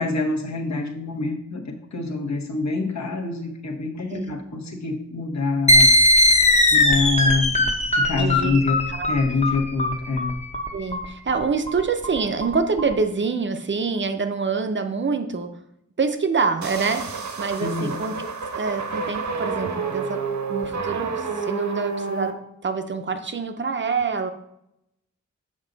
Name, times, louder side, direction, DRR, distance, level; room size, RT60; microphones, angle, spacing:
voice 1, 0.0-6.0 6.7-10.3 17.6-18.0, left 3 dB, 70° left, 3 dB, 1.1 m, -26 dB
sound 1, 5.7-12.9, left 1 dB, 25° left, 0.8 m, -19 dB
voice 2, 8.2-8.6 8.9-9.1 10.7-15.5 16.0-18.3 18.5-20.2 20.5-22.3 22.6-24.3, right 4 dB, 40° right, 8 dB, 0.5 m, -26 dB
sound 2, 16.6-22.3, right 5 dB, 80° right, 0.9 m, -29 dB
7.4 x 5.2 x 3.9 m, 0.80 s
wide cardioid pair, 160°, 29 cm